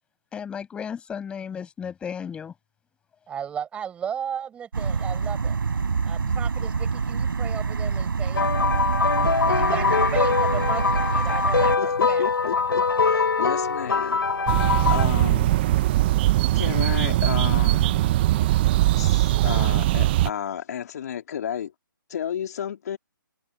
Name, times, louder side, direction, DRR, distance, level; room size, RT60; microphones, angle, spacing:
voice 1, 0.3-2.5 6.2-6.3 9.6-9.7, left 7 dB, 10° left, 5.9 m, -35 dB
voice 2, 3.3-5.6 6.1-8.4 9.5-12.3, right 8 dB, 10° right, 7.3 m, -35 dB
sound 1, 4.7-11.8, right 5 dB, 70° right, 4.8 m, -26 dB
sound 2, 8.3-15.1, left 5 dB, 85° left, 3.1 m, -23 dB
voice 3, 11.8-15.6 16.5-18.0 18.9-21.7 22.1-23.0, left 9 dB, 50° left, 3.5 m, -32 dB
sound 3, 14.5-20.3, right 15 dB, 25° right, 0.9 m, -21 dB
hypercardioid pair, 155°, 12 cm